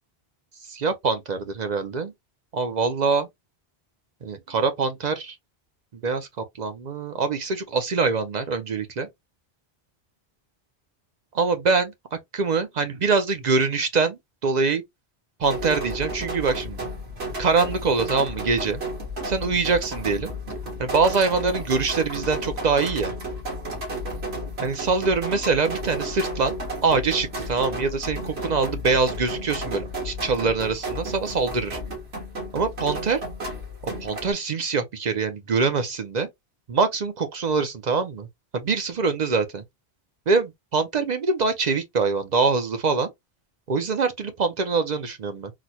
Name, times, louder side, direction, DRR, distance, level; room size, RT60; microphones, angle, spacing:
voice 1, 0.7-2.1 2.5-3.3 4.2-5.4 6.0-6.3 6.6-9.1 11.3-14.8 15.4-16.9 17.4-18.8 19.2-20.3 20.8-23.1 24.6-26.5 26.8-31.8 32.5-33.2 33.8-36.3 36.7-38.3 38.5-39.6 40.3-43.1 43.7-45.5, right 4 dB, 50° right, 0.6 m, -24 dB
sound 1, 15.4-34.3, equal, 80° right, 1.8 m, -32 dB
4.0 x 2.0 x 2.8 m
omnidirectional pair, 1.1 m